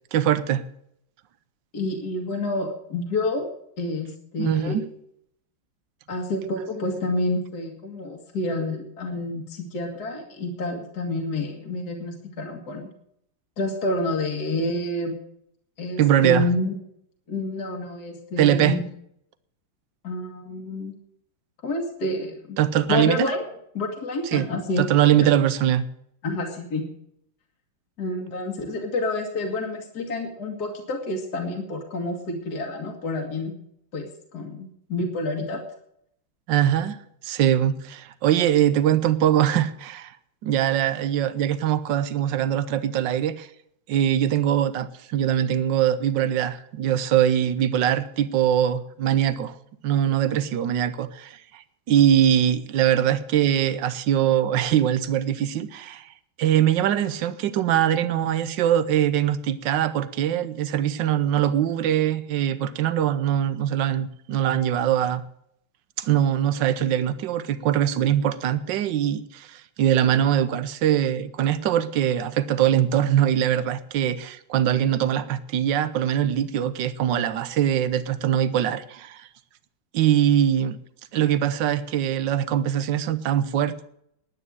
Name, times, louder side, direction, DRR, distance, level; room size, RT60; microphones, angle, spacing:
voice 1, 0.1-0.6 4.4-4.8 16.0-16.5 18.4-18.8 22.6-23.3 24.3-24.5 24.8-25.8 36.5-37.0 37.2-40.2 40.4-43.5 43.9-49.5 49.8-56.1 56.4-65.2 66.0-79.3 79.9-80.8 81.1-83.9, right 10 dB, 65° right, 1.4 m, -22 dB
voice 2, 1.7-3.5 3.8-4.8 6.1-12.9 13.6-15.2 15.8-16.8 17.3-18.9 20.0-21.0 21.6-22.6 22.9-23.4 23.7-24.9 25.2-25.3 26.2-26.8 28.0-33.5 33.9-35.6, left 2 dB, 45° left, 2.4 m, -28 dB
11.0 x 9.6 x 7.6 m
omnidirectional pair, 2.4 m